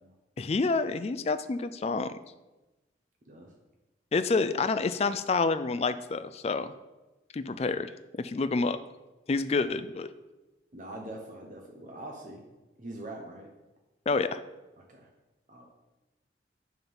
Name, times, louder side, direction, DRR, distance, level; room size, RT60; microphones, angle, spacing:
voice 1, 0.4-2.2 4.1-6.7 7.3-7.9 8.2-8.8 9.3-10.1 14.1-14.4, left 4 dB, 35° left, 12 dB, 0.3 m, -28 dB
voice 2, 10.7-12.4 12.8-13.5 14.8-15.1 15.5-15.6, right 1 dB, 45° right, 1 dB, 0.9 m, -43 dB
9.2 x 3.7 x 5.4 m, 1.1 s
head